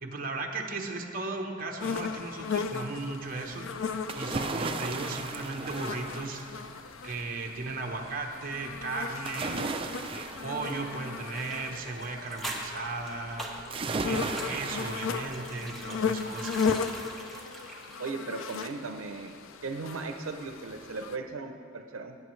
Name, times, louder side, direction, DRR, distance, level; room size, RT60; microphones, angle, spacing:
voice 1, 0.0-3.7 4.2-6.4 7.0-9.6 10.1-13.4 14.0-16.6, right 3 dB, 45° right, 2 dB, 0.9 m, -36 dB
sound 1, 1.8-21.2, left 5 dB, 75° left, 0.4 m, -36 dB
sound 2, 4.1-6.9 9.2-11.9 13.7-16.0 16.4-16.5, right 3 dB, 25° right, 0.4 m, -36 dB
sound 3, 11.3-18.9 19.2-19.3, right 1 dB, ahead, 1.1 m, -43 dB
voice 2, 18.0-19.3 19.6-22.2, right 3 dB, 85° right, 5 dB, 0.6 m, -37 dB
17.5 x 8.2 x 3.2 m, 2.4 s
head